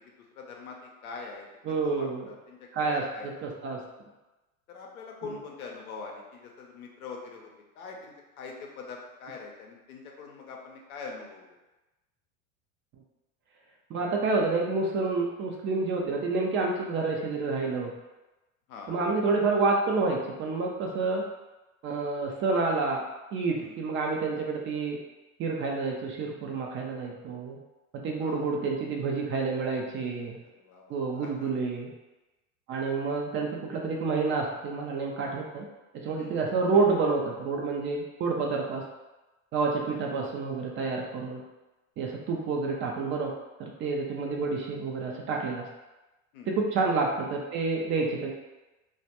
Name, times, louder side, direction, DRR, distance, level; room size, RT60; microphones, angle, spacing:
voice 1, 0.2-3.4 4.7-7.5 7.8-11.4 18.7-19.0 23.6-23.8 28.2-28.5 30.4-31.5 36.2-36.4 39.8-40.1 46.3-46.5, left 4 dB, 90° left, 0 dB, 0.6 m, -43 dB
voice 2, 1.7-2.3 2.7-3.8 5.2-5.4 13.9-17.9 18.9-21.3 21.8-23.0 23.3-25.0 25.4-27.6 27.9-30.4 30.9-31.9 32.7-35.7 35.9-38.8 39.5-41.4 42.0-43.3 43.6-45.7 46.5-48.3, right 4 dB, 30° right, 0 dB, 0.4 m, -29 dB
2.2 x 2.1 x 2.8 m, 1.1 s
hypercardioid pair, 90°, 41 cm